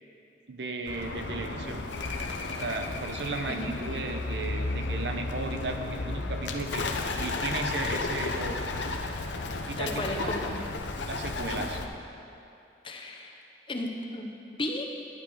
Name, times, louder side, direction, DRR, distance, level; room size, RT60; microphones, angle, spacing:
voice 1, 0.5-1.9 2.6-6.9 7.2-8.7 9.7-10.4 11.1-11.8, right 3 dB, 75° right, 5 dB, 0.8 m, -35 dB
Bird, 0.9-11.9, left 3 dB, 90° left, 0.8 m, -33 dB
voice 2, 9.8-10.6 11.5-11.6 12.8-13.4 13.7-14.8, left 1 dB, 30° left, 2 dB, 0.9 m, -34 dB
11.5 x 10.0 x 4.9 m, 2.7 s
head